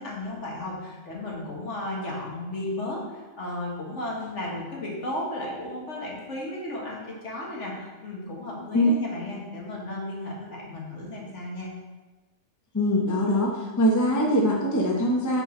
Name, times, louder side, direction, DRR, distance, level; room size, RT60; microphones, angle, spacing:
voice 1, 0.0-11.7, left 1 dB, 65° left, -3 dB, 1.7 m, -34 dB
voice 2, 12.7-15.4, left 1 dB, 20° left, -1 dB, 0.7 m, -22 dB
5.9 x 4.9 x 4.3 m, 1.2 s
omnidirectional pair, 1.3 m